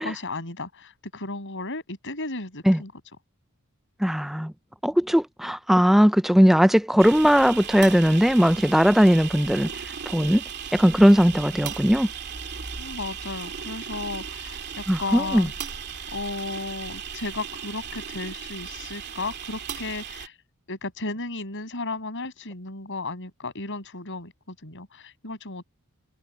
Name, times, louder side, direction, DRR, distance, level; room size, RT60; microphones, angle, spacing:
voice 1, 0.0-2.9 12.8-15.5 16.1-20.3 20.7-25.6, left 3 dB, 60° left, 7.7 m, -34 dB
voice 2, 4.0-4.5 4.8-9.7 10.1-10.4 10.7-12.1 14.9-15.5, equal, ahead, 0.4 m, -19 dB
sound 1, 7.0-20.3, right 7 dB, 50° right, 2.4 m, -36 dB
head